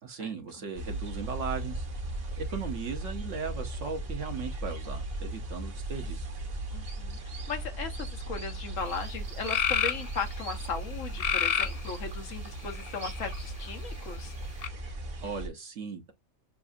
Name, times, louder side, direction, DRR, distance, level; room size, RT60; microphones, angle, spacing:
voice 1, 0.0-1.8 2.4-6.3 15.2-16.1, right 5 dB, 70° right, 1.3 m, -37 dB
sound 1, 0.7-15.5, right 2 dB, 50° right, 1.2 m, -37 dB
voice 2, 6.7-14.3, left 5 dB, 90° left, 1.4 m, -37 dB
sound 2, 8.8-8.9 9.5-10.0 11.2-11.8 12.6-13.3 14.6-14.7, left 7 dB, 60° left, 0.4 m, -28 dB
6.8 x 2.4 x 2.6 m
omnidirectional pair, 1.3 m